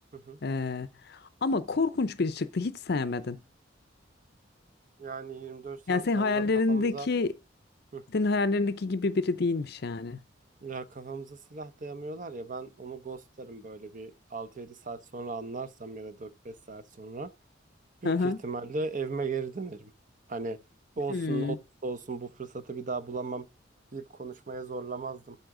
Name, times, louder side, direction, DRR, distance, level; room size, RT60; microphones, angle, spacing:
voice 1, 0.4-3.4 5.9-7.3 8.1-10.2 18.0-18.4 21.1-21.6, left 3 dB, 55° left, 0.5 m, -28 dB
voice 2, 5.0-7.1 7.9-8.0 10.6-17.3 18.0-19.9 20.3-20.6 21.0-21.6 21.8-23.5 23.9-25.4, right 4 dB, 40° right, 0.8 m, -37 dB
12.5 x 4.2 x 3.7 m
head